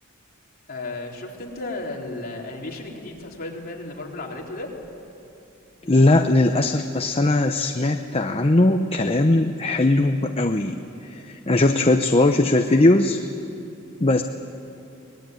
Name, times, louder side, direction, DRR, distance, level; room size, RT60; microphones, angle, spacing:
voice 1, 0.7-4.7, left 2 dB, 45° left, -2 dB, 3.8 m, -34 dB
voice 2, 5.8-10.8 11.1-13.2 14.0-14.2, left 2 dB, 25° left, 6 dB, 0.8 m, -19 dB
24.5 x 20.5 x 9.3 m, 2.8 s
head